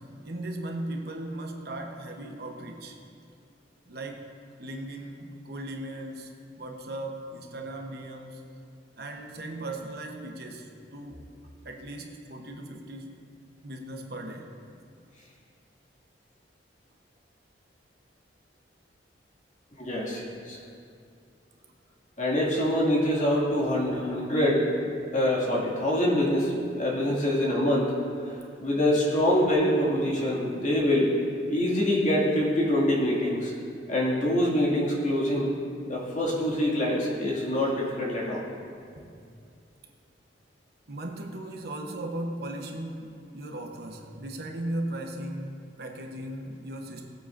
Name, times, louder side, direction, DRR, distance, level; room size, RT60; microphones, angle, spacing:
voice 1, 0.0-3.0 3.9-4.3 4.6-6.3 6.6-8.5 9.0-11.3 11.6-13.2 13.6-14.5 39.0-39.1 40.9-47.1, right 1 dB, 55° right, 2 dB, 1.0 m, -37 dB
voice 2, 19.8-20.6 22.2-24.6 25.1-27.9 28.3-31.1 31.5-33.5 33.9-35.5 35.9-38.4, left 1 dB, 40° left, -5 dB, 2.2 m, -25 dB
18.5 x 8.6 x 2.6 m, 2.4 s
head